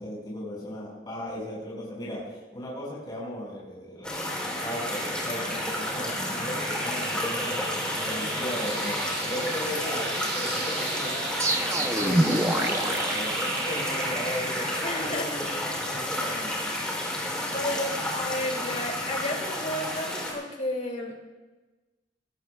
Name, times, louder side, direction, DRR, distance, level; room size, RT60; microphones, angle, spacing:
voice 1, 0.0-7.6 8.0-10.1 10.3-14.7 15.0-16.7, left 1 dB, 25° left, -5 dB, 4.7 m, -36 dB
sound 1, 4.0-20.3, left 1 dB, 5° left, 3.2 m, -31 dB
sound 2, 4.3-15.1, right 3 dB, 75° right, 4.4 m, -35 dB
sound 3, 11.4-14.2, right 1 dB, 15° right, 0.7 m, -27 dB
voice 2, 14.8-15.3 17.5-21.1, left 1 dB, 40° left, 0 dB, 2.6 m, -32 dB
20.5 x 16.0 x 2.4 m, 1.2 s
head